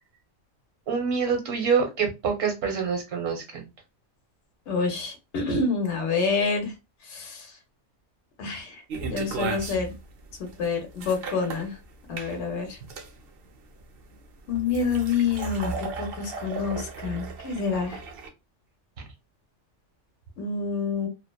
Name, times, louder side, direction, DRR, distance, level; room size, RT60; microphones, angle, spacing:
voice 1, 0.9-3.7, right 6 dB, 80° right, 3 dB, 1.2 m, -26 dB
voice 2, 4.7-6.7 7.1-7.5 8.4-8.8 9.0-9.9 10.6-11.8 12.1-12.8 14.5-18.0 20.4-21.1, left 5 dB, 65° left, 3 dB, 1.0 m, -27 dB
sound 1, 8.9-18.3, right 4 dB, 60° right, 0.6 m, -36 dB
2.8 x 2.0 x 2.2 m, 0.24 s
omnidirectional pair, 1.3 m